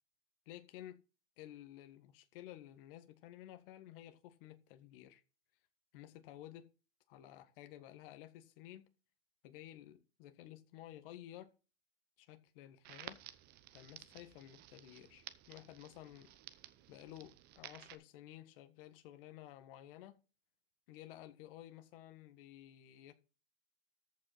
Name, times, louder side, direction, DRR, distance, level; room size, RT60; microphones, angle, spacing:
voice 1, 0.4-1.0 1.4-5.2 5.9-6.7 7.1-8.9 9.4-11.5 12.2-13.2 13.7-16.3 16.9-20.2 20.9-23.1, left 13 dB, 50° left, 1.6 m, -54 dB
Crackle, 12.8-17.9, right 14 dB, 25° right, 0.8 m, -54 dB
14.0 x 5.6 x 4.1 m
supercardioid pair, 145°, 37 cm